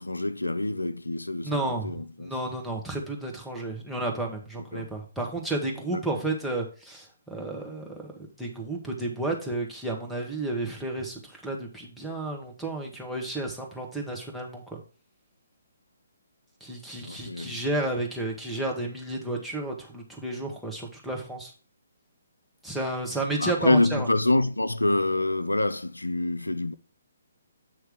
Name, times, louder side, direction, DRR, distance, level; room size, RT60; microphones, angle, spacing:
voice 1, 0.0-2.3 4.7-4.9 5.9-6.2 17.0-17.6 23.4-26.7, left 2 dB, 85° left, 0.4 m, -26 dB
voice 2, 1.4-14.8 16.6-21.5 22.6-24.1, right 2 dB, ahead, 1.4 m, -32 dB
8.2 x 3.2 x 5.0 m
figure-of-eight pair, 135°, 0 cm